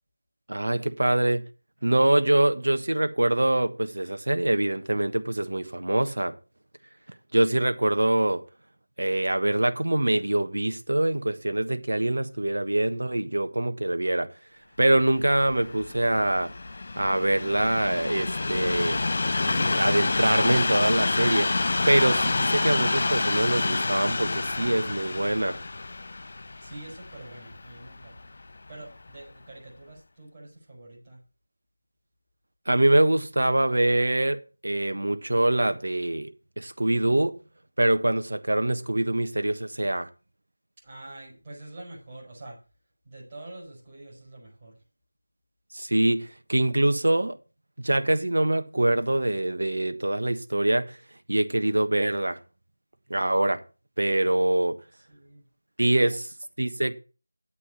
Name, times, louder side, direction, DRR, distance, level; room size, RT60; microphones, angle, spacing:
voice 1, 0.5-1.4 1.8-6.3 7.3-8.4 9.0-14.3 14.8-16.5 17.0-19.0 19.5-21.5 21.9-25.6 32.7-36.3 36.6-37.3 37.8-40.1 45.7-47.3 47.8-51.0 51.3-52.4 53.1-53.6 54.0-54.8 55.8-56.9, right 1 dB, 70° right, 1.4 m, -24 dB
Train, 15.2-28.4 29.1-29.2, left 3 dB, 45° left, 0.6 m, -28 dB
voice 2, 26.6-28.2 28.7-31.2 40.8-42.6 43.0-44.8 55.1-55.4 56.0-56.2, right 2 dB, 20° right, 6.1 m, -45 dB
8.9 x 8.4 x 5.9 m
figure-of-eight pair, 170°, 0 cm